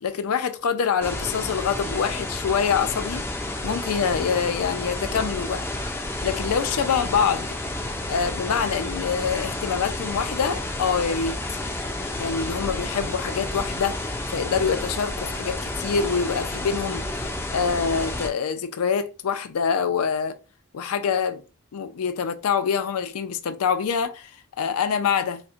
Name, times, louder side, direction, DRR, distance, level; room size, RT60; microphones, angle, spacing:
voice 1, 0.0-3.2 3.6-5.6 6.2-7.6 8.1-11.4 12.2-17.1 17.5-20.4 20.7-21.4 21.7-24.3 24.6-25.4, left 6 dB, 90° left, 0.4 m, -25 dB
sound 1, 1.0-18.3, left 1 dB, 10° left, 0.4 m, -31 dB
4.0 x 2.1 x 2.4 m
head